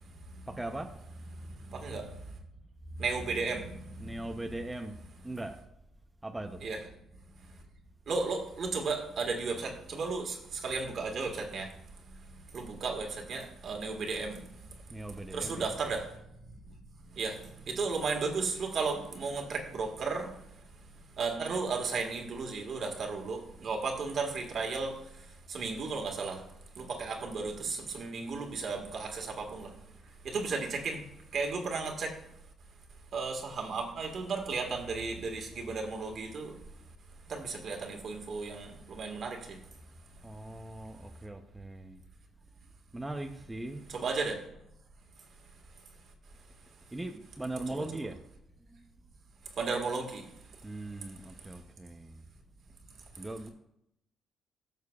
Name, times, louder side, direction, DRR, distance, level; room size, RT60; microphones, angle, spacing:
voice 1, 0.5-0.9 4.0-4.9 5.2-5.6 6.2-6.6 14.9-15.8 40.2-42.0 42.9-43.9 46.9-48.2 48.7-48.9 50.6-52.2 53.2-53.5, right 1 dB, 10° right, 4 dB, 0.7 m, -40 dB
voice 2, 1.3-2.1 3.0-4.2 6.6-6.8 8.1-11.7 12.5-14.5 15.3-16.2 16.6-16.7 17.1-20.3 20.8-20.9 21.2-24.9 25.5-26.4 26.8-29.7 30.2-31.0 31.3-32.1 33.1-36.6 37.3-39.6 43.9-44.4 47.7-47.8 49.6-50.2, right 4 dB, 60° right, 2 dB, 1.7 m, -34 dB
13.5 x 6.5 x 2.4 m, 0.78 s
cardioid pair, 90°, 0 cm